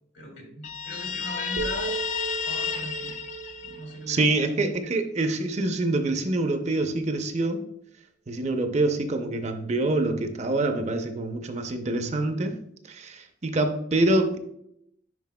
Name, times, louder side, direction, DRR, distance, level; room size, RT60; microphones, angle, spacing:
voice 1, 0.1-1.9 2.4-3.1 3.6-4.2, left 1 dB, 80° left, 0 dB, 2.4 m, -39 dB
Guitar, 0.6-4.2, left 7 dB, 40° left, 0.4 m, -32 dB
sound 1, 1.6-5.7, right 6 dB, 85° right, 0.8 m, -37 dB
voice 2, 4.1-7.6 8.3-12.5 12.9-14.4, right 2 dB, 35° right, 6 dB, 0.6 m, -25 dB
9.4 x 4.6 x 2.2 m, 0.74 s
head